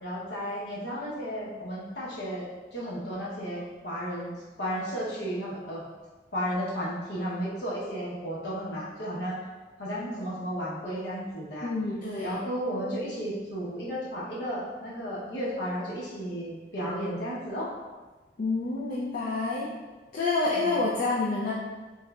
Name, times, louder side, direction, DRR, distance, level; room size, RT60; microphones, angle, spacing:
voice 1, 0.0-5.8 6.3-9.4 9.8-11.7 12.2-17.7 20.5-20.8, equal, 65° left, -5 dB, 0.9 m, -33 dB
voice 2, 11.6-12.4 18.4-19.7 20.1-21.6, left 3 dB, 50° left, -7 dB, 0.4 m, -28 dB
3.4 x 3.0 x 2.3 m, 1.3 s
head